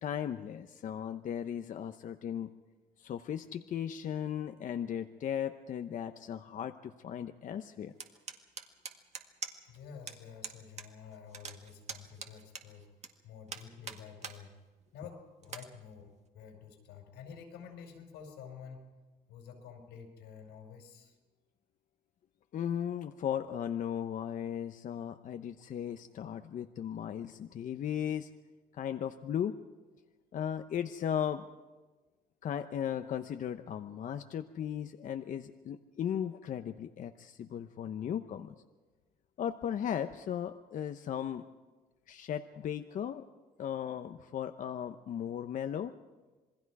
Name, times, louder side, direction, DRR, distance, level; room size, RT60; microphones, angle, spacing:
voice 1, 0.0-2.5 3.0-7.9 22.5-28.3 28.7-29.6 30.3-31.4 32.4-38.5 39.4-41.4 42.1-43.2 43.6-45.9, left 9 dB, 50° left, 8 dB, 0.9 m, -36 dB
sound 1, 8.0-9.8 10.1-10.2 10.4-10.9 11.1-13.1 13.5-14.4 14.8-14.9 15.4-15.7, right 6 dB, 40° right, 1.9 m, -43 dB
voice 2, 9.7-12.9 13.2-14.5 14.9-18.8 19.3-21.2, left 7 dB, 90° left, 4 dB, 5.0 m, -50 dB
27.0 x 20.5 x 4.8 m, 1.2 s
cardioid pair, 110°, 17 cm